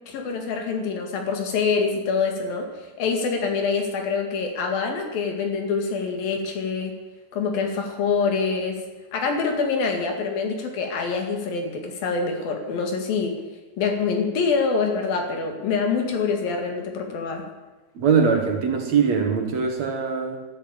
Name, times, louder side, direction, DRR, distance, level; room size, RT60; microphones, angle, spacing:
voice 1, 0.1-2.7 3.0-6.9 7.3-8.8 9.1-13.3 13.8-17.4, left 5 dB, 75° left, 3 dB, 3.9 m, -25 dB
voice 2, 18.0-20.4, right 6 dB, 55° right, 4 dB, 2.4 m, -22 dB
13.0 x 11.5 x 8.9 m, 1.2 s
omnidirectional pair, 4.2 m